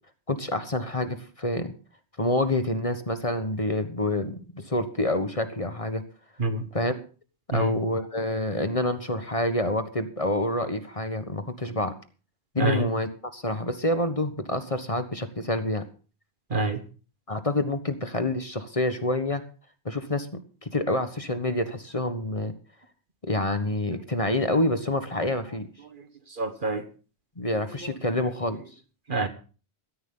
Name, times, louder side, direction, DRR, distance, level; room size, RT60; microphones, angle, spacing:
voice 1, 0.3-1.7 2.2-6.0 6.7-7.0 7.5-11.9 12.5-15.9 17.3-19.4 19.8-20.3 20.6-22.5 23.2-25.7 27.4-28.6, left 1 dB, 30° left, 1.4 m, -27 dB
voice 2, 16.5-16.8 25.9-26.0 26.3-26.9 27.8-27.9 29.1-29.3, right 3 dB, 50° right, 1.5 m, -27 dB
16.0 x 14.0 x 3.9 m
omnidirectional pair, 1.1 m